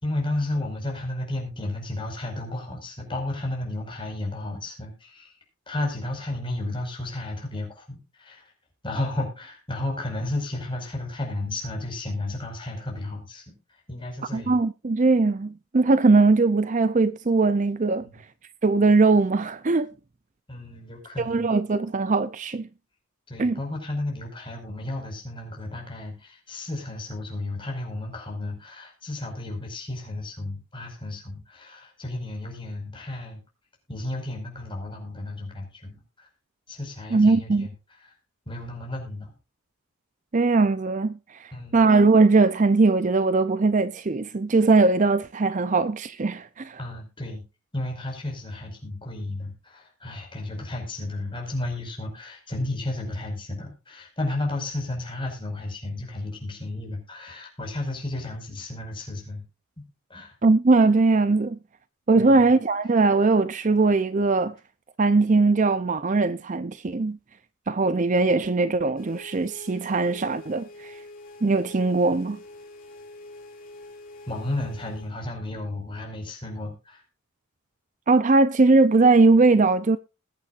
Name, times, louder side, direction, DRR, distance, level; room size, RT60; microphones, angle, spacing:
voice 1, 0.0-5.3 5.7-8.5 8.8-13.4 13.7-14.6 18.0-18.2 20.5-21.5 23.3-33.4 33.9-36.3 36.7-37.7 38.0-38.1 38.4-39.3 41.5-41.8 46.8-47.4 47.7-59.4 59.8-60.3 62.2-62.5 74.3-77.0, left 2 dB, 20° left, 5.1 m, -33 dB
voice 2, 14.3-18.1 18.6-19.9 21.2-22.7 23.4-23.6 37.1-37.7 40.3-46.8 60.4-61.6 62.1-64.5 65.0-67.2 67.7-70.9 71.4-72.4 78.1-80.0, right 3 dB, 35° right, 0.5 m, -20 dB
sound 1, 69.0-75.1, left 2 dB, 40° left, 4.0 m, -45 dB
21.0 x 8.7 x 2.5 m
head